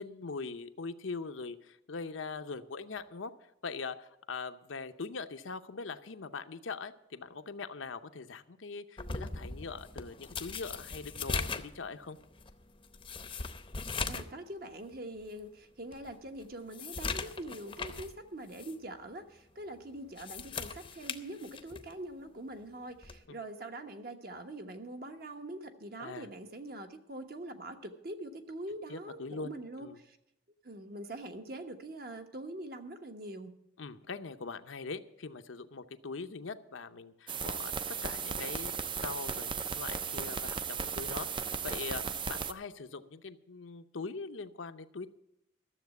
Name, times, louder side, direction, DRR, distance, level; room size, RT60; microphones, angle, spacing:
voice 1, 0.0-3.3 3.6-12.2 23.3-23.4 26.0-26.3 28.9-29.5 29.8-30.0 33.8-37.7 38.0-45.1, left 4 dB, 80° left, 9 dB, 0.7 m, -42 dB
sound 1, 9.0-14.4 14.7-14.8 15.4-15.5 15.9-18.2 18.5-18.7 20.0-21.9 23.0-23.3, left 4 dB, 25° left, 0.7 m, -39 dB
voice 2, 14.1-30.2 30.6-33.5, right 1 dB, 50° right, 6 dB, 1.1 m, -43 dB
sound 2, 37.3-42.5, right 6 dB, 25° right, 0.4 m, -36 dB
13.0 x 7.4 x 8.1 m, 0.82 s
head